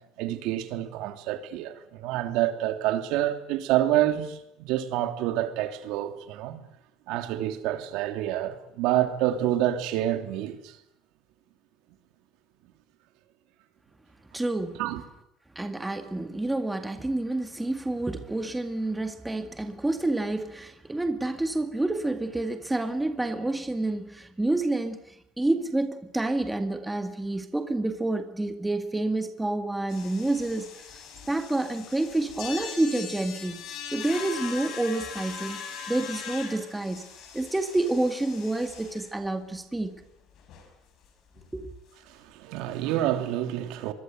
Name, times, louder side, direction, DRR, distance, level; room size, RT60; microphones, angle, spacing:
voice 1, 0.2-6.6 7.1-10.8 14.8-15.0 42.1-43.9, right 13 dB, 70° right, 3.1 m, -28 dB
voice 2, 14.3-14.8 15.6-25.0 25.4-30.7 31.3-33.6 33.9-35.6 35.9-37.1 37.3-39.9 41.5-41.7, right 2 dB, 5° right, 1.9 m, -28 dB
sound 1, 29.9-39.2 39.5-39.6 40.0-40.1 40.3-40.7 41.0-41.1 41.4-41.5 42.7-42.8, left 7 dB, 50° left, 6.9 m, -40 dB
25.0 x 22.5 x 8.0 m
cardioid pair, 160°, 0 cm